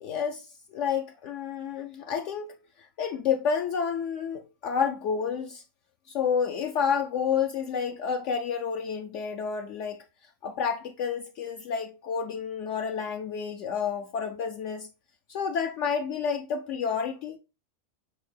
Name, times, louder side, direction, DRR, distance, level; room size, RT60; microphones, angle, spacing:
voice 1, 0.0-5.6 6.1-14.9 15.3-17.4, left 6 dB, 70° left, 0.8 m, -30 dB
6.4 x 4.5 x 3.3 m
omnidirectional pair, 1.4 m